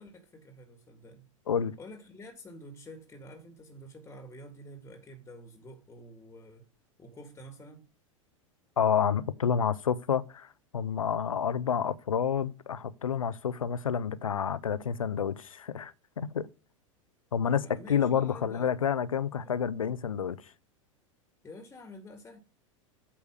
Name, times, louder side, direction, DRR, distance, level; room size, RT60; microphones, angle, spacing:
voice 1, 0.0-1.3 1.8-6.7 7.0-7.9 17.6-18.7 19.4-19.5 21.4-22.4, equal, 15° left, 1.6 m, -49 dB
voice 2, 8.8-10.5 10.7-16.5 17.3-20.4, left 7 dB, 80° left, 0.7 m, -29 dB
8.6 x 4.7 x 6.4 m
figure-of-eight pair, 90°, 17 cm